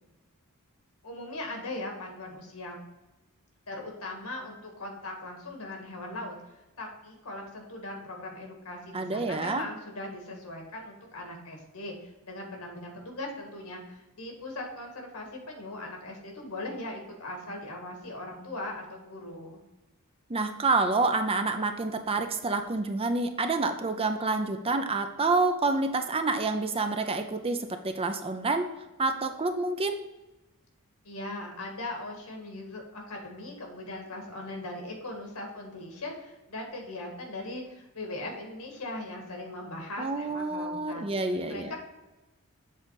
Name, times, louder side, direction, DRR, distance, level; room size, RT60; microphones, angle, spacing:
voice 1, 1.0-2.8 3.7-6.3 6.8-19.6 31.0-41.1 41.5-41.8, left 2 dB, 85° left, 1 dB, 1.9 m, -39 dB
voice 2, 8.9-9.6 20.3-28.7 29.0-30.0 40.0-41.7, right 3 dB, 25° right, 7 dB, 0.5 m, -28 dB
7.4 x 3.9 x 4.7 m, 1.0 s
head